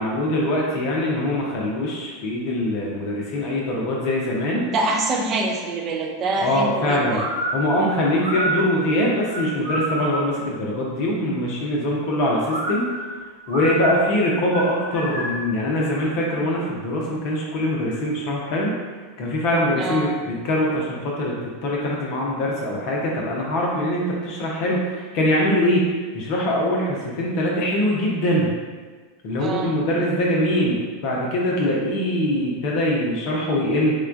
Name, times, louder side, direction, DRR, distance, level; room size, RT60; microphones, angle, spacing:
voice 1, 0.0-4.7 6.3-7.2 7.5-12.9 13.5-18.7 19.2-28.5 29.2-33.9, left 1 dB, 45° left, -3 dB, 0.6 m, -23 dB
voice 2, 4.7-7.2 19.8-20.2 29.4-29.8, right 2 dB, 30° right, 0 dB, 0.5 m, -25 dB
sound 1, 7.1-10.4 12.4-15.5, right 1 dB, 65° right, 0.8 m, -28 dB
4.4 x 2.2 x 2.5 m, 1.4 s
figure-of-eight pair, 90°, 0 cm